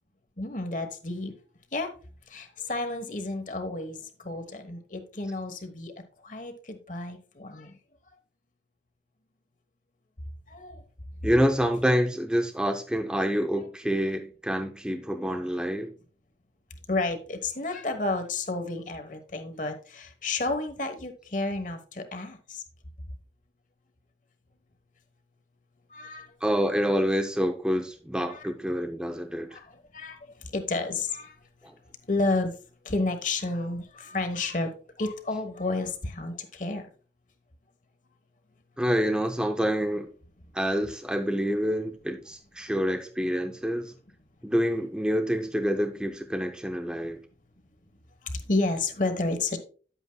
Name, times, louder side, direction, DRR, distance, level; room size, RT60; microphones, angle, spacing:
voice 1, 0.4-1.3 1.7-1.9 2.3-4.0 4.2-5.9 6.2-7.7 10.5-10.8 16.9-22.6 25.9-26.3 28.3-28.4 29.5-29.6 29.9-30.2 30.5-31.3 32.1-32.5 32.8-34.7 35.0-36.9 48.3-49.6, left 2 dB, 45° left, 1.2 m, -31 dB
voice 2, 11.2-15.9 26.4-29.6 31.6-31.7 38.8-40.1 40.5-43.9 44.4-47.2, equal, 5° right, 0.6 m, -27 dB
10.5 x 8.0 x 2.3 m
head